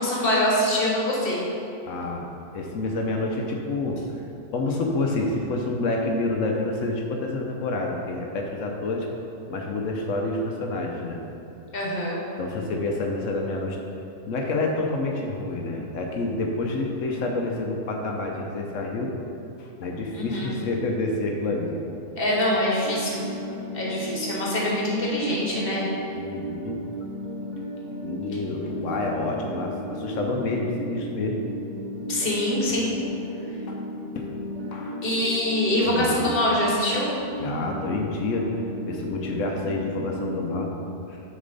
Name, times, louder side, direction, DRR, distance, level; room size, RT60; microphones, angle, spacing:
voice 1, 0.0-1.4 11.7-12.2 20.1-20.5 22.2-23.3 23.7-25.9 32.1-32.9 35.0-37.1, left 1 dB, 40° left, -4 dB, 1.4 m, -24 dB
voice 2, 1.9-2.2 2.5-4.0 4.5-9.1 9.5-11.2 12.4-13.8 14.3-19.1 19.6-21.7 26.1-26.8 28.0-31.4 33.7-33.8 34.1-34.3 34.7-35.0 35.8-36.1 37.4-38.5 38.8-40.7 41.1-41.2, left 2 dB, 65° left, 1 dB, 1.0 m, -28 dB
sound 1, 22.3-40.7, equal, 40° right, 0.7 m, -34 dB
6.5 x 5.4 x 3.9 m, 2.8 s
omnidirectional pair, 1.6 m